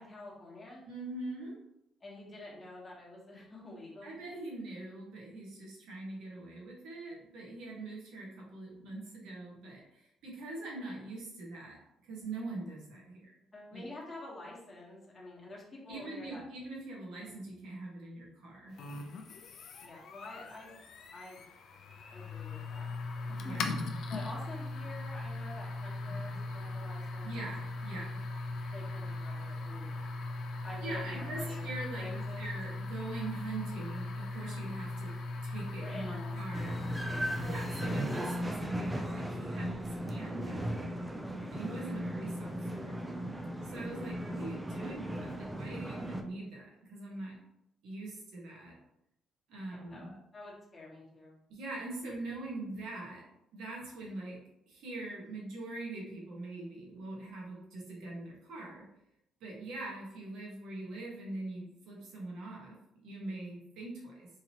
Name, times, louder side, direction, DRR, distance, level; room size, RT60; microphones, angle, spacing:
voice 1, 0.0-0.8 2.0-4.2 13.5-16.4 19.8-20.7 21.1-21.4 22.1-22.9 23.3-23.6 24.1-27.5 28.7-29.9 30.6-31.7 32.0-32.4 35.8-36.4 49.7-51.4, left 2 dB, 25° left, -4 dB, 1.3 m, -47 dB
voice 2, 0.9-1.6 4.0-13.3 13.7-13.8 15.9-18.8 23.4-23.9 27.2-28.2 30.5-36.8 37.4-40.9 41.5-43.0 43.6-47.4 47.8-48.8 49.5-50.1 51.5-54.4 54.7-58.9 59.4-64.3, right 2 dB, 85° right, -3 dB, 1.3 m, -43 dB
sound 1, 18.8-38.3, left 2 dB, 65° left, 0.4 m, -39 dB
sound 2, 36.5-46.2, equal, 5° right, 0.4 m, -37 dB
3.7 x 2.8 x 2.9 m, 0.80 s
cardioid pair, 130°, 0 cm